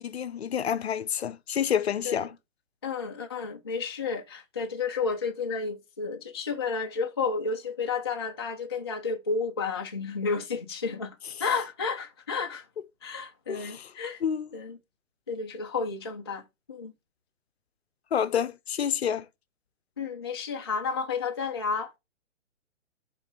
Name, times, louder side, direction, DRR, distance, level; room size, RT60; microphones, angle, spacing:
voice 1, 0.0-2.3 13.5-13.9 14.2-14.5 18.1-19.3, left 8 dB, 55° left, 0.6 m, -28 dB
voice 2, 2.8-12.7 13.0-14.2 14.5-14.8 15.3-16.4 16.7-16.9 20.0-21.9, left 5 dB, 20° left, 0.4 m, -31 dB
5.8 x 3.8 x 4.9 m
figure-of-eight pair, 130°, 39 cm